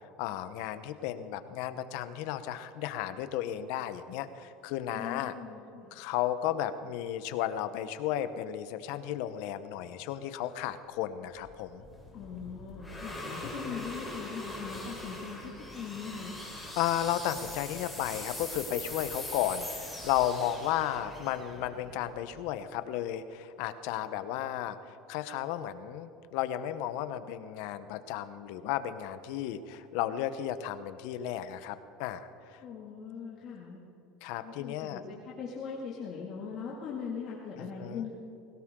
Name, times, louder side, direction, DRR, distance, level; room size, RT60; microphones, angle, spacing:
voice 1, 0.2-5.3 5.9-11.9 13.4-13.9 16.5-32.6 34.2-35.0 37.6-38.1, left 11 dB, 70° left, 11 dB, 1.0 m, -34 dB
voice 2, 4.9-6.0 12.1-15.4 15.7-16.4 32.6-33.8 34.4-38.2, left 6 dB, 50° left, -4 dB, 2.3 m, -40 dB
sound 1, 11.3-22.6, left 1 dB, ahead, 4.2 m, -42 dB
21.5 x 18.0 x 3.8 m, 2.8 s
supercardioid pair, 135°, 0 cm